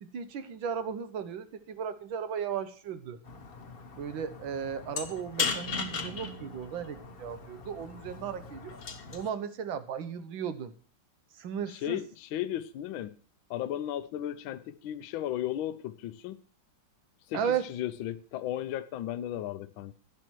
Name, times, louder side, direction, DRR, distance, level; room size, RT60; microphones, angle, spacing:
voice 1, 0.0-3.2 4.0-8.8 9.1-10.7 11.4-12.0 17.3-17.6, right 7 dB, 70° right, 11 dB, 1.7 m, -35 dB
sound 1, 3.3-9.3, left 5 dB, 40° left, 0.9 m, -37 dB
voice 2, 11.7-13.1 13.5-16.4 17.3-19.9, left 12 dB, 75° left, 11 dB, 1.4 m, -35 dB
12.0 x 10.5 x 4.6 m, 0.40 s
omnidirectional pair, 2.3 m